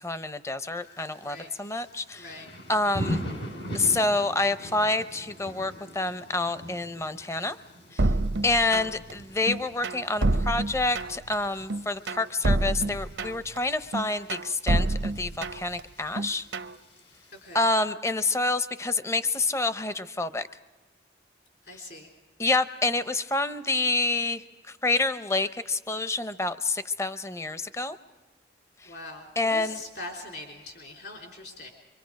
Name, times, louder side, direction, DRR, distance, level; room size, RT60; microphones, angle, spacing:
voice 1, 0.0-2.4 2.7-3.2 3.7-7.6 7.9-8.0 8.4-16.5 17.5-20.5 22.4-24.4 24.8-28.0 29.4-29.8, left 2 dB, 15° left, 12 dB, 0.6 m, -28 dB
Thunder / Rain, 0.8-17.7, equal, 80° left, 3.7 m, -42 dB
voice 2, 2.1-2.5 17.4-17.6 21.7-22.1 28.8-31.7, left 2 dB, 60° left, 1 dB, 3.5 m, -42 dB
sound 1, 8.0-9.1 9.5-11.3 11.7-13.6 13.9-15.8 16.2-16.8, right 2 dB, 80° right, 0.7 m, -27 dB
25.0 x 24.5 x 5.2 m, 1.2 s
head